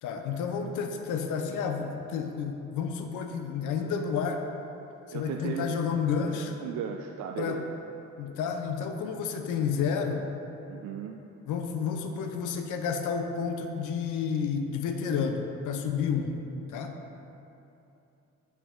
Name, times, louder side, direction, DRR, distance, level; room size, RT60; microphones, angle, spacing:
voice 1, 0.0-4.4 5.1-6.6 7.4-7.6 8.2-10.3 11.5-16.4 16.7-16.9, left 6 dB, 85° left, 5 dB, 0.6 m, -30 dB
voice 2, 5.1-5.8 6.6-7.7 10.7-11.2, right 7 dB, 70° right, 3 dB, 0.4 m, -36 dB
8.0 x 4.9 x 3.7 m, 2.9 s
cardioid pair, 90°, 30 cm